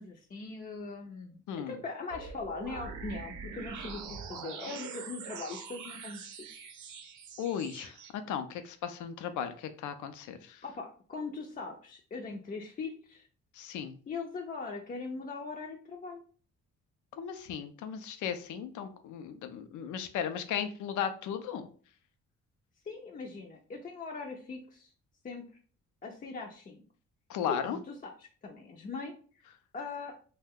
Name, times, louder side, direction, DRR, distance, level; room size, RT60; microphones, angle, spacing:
voice 1, 0.0-1.4 1.7-6.7 10.6-13.3 14.1-16.2 22.9-24.9 25.2-25.5 26.0-26.9 27.5-28.1 28.4-29.1 29.7-30.1, left 4 dB, 30° left, 1 dB, 0.4 m, -40 dB
voice 2, 1.5-1.8 7.4-8.0 8.3-10.6 13.5-14.0 17.1-21.7 27.3-27.8, left 8 dB, 80° left, 9 dB, 0.5 m, -36 dB
sound 1, 2.1-8.1, right 5 dB, 75° right, 0.6 m, -43 dB
2.6 x 2.1 x 3.5 m, 0.41 s
cardioid pair, 90°, 30 cm